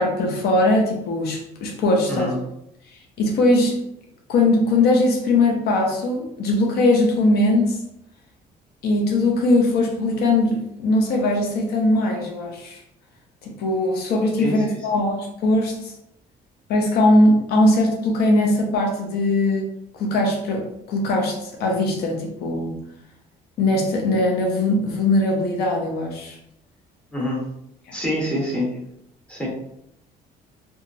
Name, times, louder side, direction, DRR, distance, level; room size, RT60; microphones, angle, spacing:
voice 1, 0.0-2.3 3.2-3.8 4.3-7.8 8.8-12.8 13.4-15.9 16.7-19.7 19.9-22.8 23.6-26.4 27.9-28.0, left 2 dB, 70° left, 1 dB, 0.6 m, -20 dB
voice 2, 2.1-2.4 14.4-14.8 27.1-27.5 27.9-28.7 29.3-29.5, left 1 dB, 5° left, -5 dB, 1.0 m, -26 dB
2.9 x 2.3 x 2.5 m, 0.79 s
cardioid pair, 110°, 17 cm